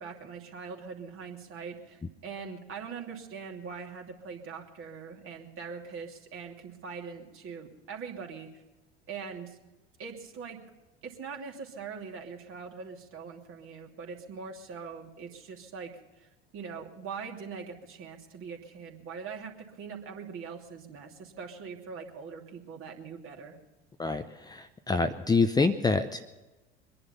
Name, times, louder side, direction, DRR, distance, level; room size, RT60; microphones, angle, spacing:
voice 1, 0.0-8.5 9.1-9.6 10.0-10.6 11.0-15.9 16.2-23.6, right 5 dB, 45° right, 1 dB, 2.9 m, -42 dB
voice 2, 24.0-26.4, left 4 dB, 15° left, 8 dB, 0.7 m, -27 dB
23.0 x 11.0 x 5.6 m, 1.1 s
hypercardioid pair, 75°, 30 cm